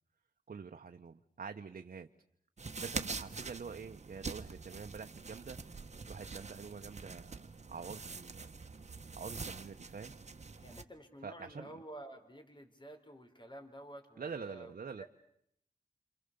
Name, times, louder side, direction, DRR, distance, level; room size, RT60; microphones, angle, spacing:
voice 1, 0.5-2.1 2.8-5.6 6.1-8.5 9.1-10.1 11.2-11.8 14.2-15.0, right 5 dB, 60° right, 6 dB, 1.0 m, -46 dB
sound 1, 2.6-10.8, right 4 dB, 45° right, 1.4 m, -45 dB
voice 2, 10.6-14.7 15.0-15.1, right 1 dB, 30° left, 7 dB, 4.4 m, -51 dB
28.5 x 26.0 x 6.9 m, 0.73 s
wide cardioid pair, 85°, 16 cm